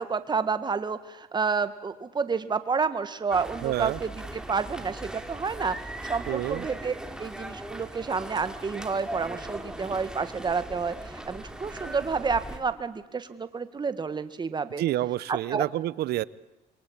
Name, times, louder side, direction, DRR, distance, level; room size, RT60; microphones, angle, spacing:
voice 1, 0.0-5.8 6.0-14.8 15.3-15.7, right 5 dB, 25° right, 11 dB, 1.7 m, -30 dB
sound 1, 3.3-12.6, right 1 dB, 5° right, 2.9 m, -39 dB
voice 2, 3.6-4.0 6.3-6.6 14.8-16.2, right 14 dB, 70° right, 20 dB, 0.9 m, -28 dB
27.0 x 23.0 x 8.8 m, 1.0 s
cardioid pair, 110°, 17 cm